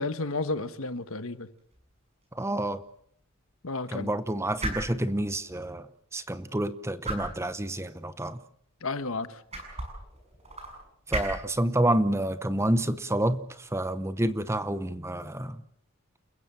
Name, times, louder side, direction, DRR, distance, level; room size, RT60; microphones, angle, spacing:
voice 1, 0.0-1.5 3.6-4.1 8.8-9.4, left 3 dB, 65° left, 1.3 m, -32 dB
sound 1, 1.6-15.1, right 1 dB, 30° right, 6.9 m, -41 dB
voice 2, 2.3-2.8 3.9-8.4 11.1-15.6, right 1 dB, 10° right, 0.8 m, -29 dB
29.5 x 15.5 x 7.4 m
head